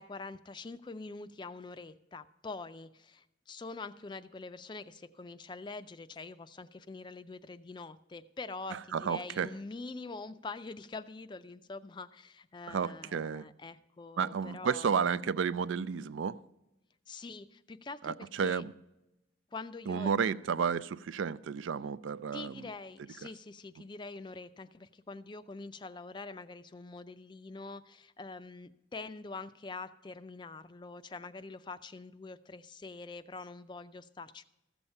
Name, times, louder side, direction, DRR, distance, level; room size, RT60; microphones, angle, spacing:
voice 1, 0.0-14.9 17.1-18.6 19.5-20.1 22.3-34.4, left 3 dB, 25° left, 0.3 m, -45 dB
voice 2, 8.7-9.5 12.7-13.5 14.2-16.4 18.0-18.7 19.9-22.7, right 6 dB, 85° right, 0.4 m, -32 dB
14.5 x 7.1 x 5.4 m
head